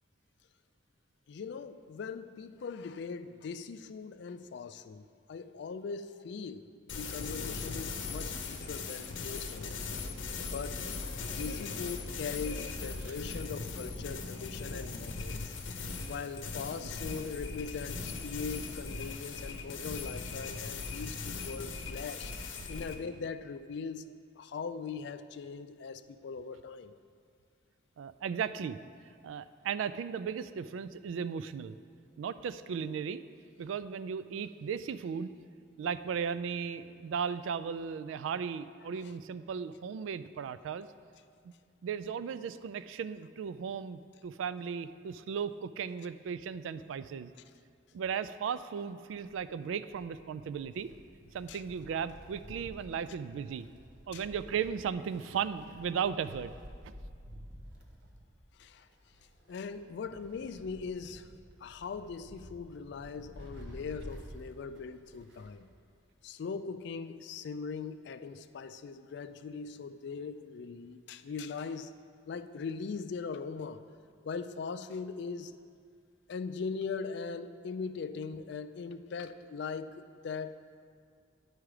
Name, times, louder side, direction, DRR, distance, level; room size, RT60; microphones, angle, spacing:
voice 1, 1.3-6.7 7.0-9.8 10.5-11.1 11.4-15.5 16.1-22.3 22.7-24.0 24.4-26.9 51.5-51.6 54.1-54.2 58.6-58.9 59.5-61.3 61.6-65.7 66.2-71.9 72.3-73.8 74.2-75.6 76.3-80.8, left 5 dB, 60° left, 11 dB, 0.3 m, -40 dB
sound 1, 6.9-23.0, left 4 dB, 75° left, 0.7 m, -39 dB
voice 2, 28.0-28.8 29.2-31.8 32.2-33.2 33.6-35.3 35.8-40.9 41.8-47.3 47.9-50.9 51.3-53.7 54.1-56.5 56.8-56.9, right 7 dB, 80° right, 14 dB, 0.3 m, -36 dB
Wind, 49.0-65.6 65.9-66.0 67.0-67.1, equal, 65° right, 1.0 m, -51 dB
10.0 x 4.8 x 4.8 m, 2.2 s
head